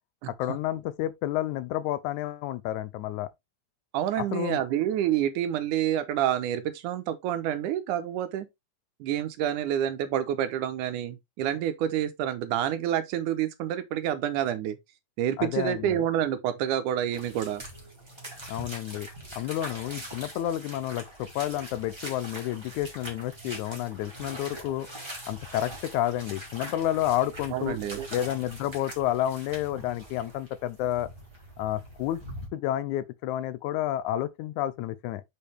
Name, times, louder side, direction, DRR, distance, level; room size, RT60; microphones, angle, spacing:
voice 1, 0.4-3.3 4.3-4.6 15.4-16.0 18.5-24.9 25.3-27.8 28.1-31.1 31.6-32.2 32.5-35.2, left 13 dB, 80° left, 1.9 m, -30 dB
voice 2, 3.9-8.5 9.0-14.8 15.2-17.6 27.5-28.1, right 11 dB, 85° right, 2.4 m, -28 dB
sound 1, 17.1-32.5, right 1 dB, 10° right, 2.4 m, -43 dB
6.5 x 5.5 x 3.4 m
omnidirectional pair, 3.6 m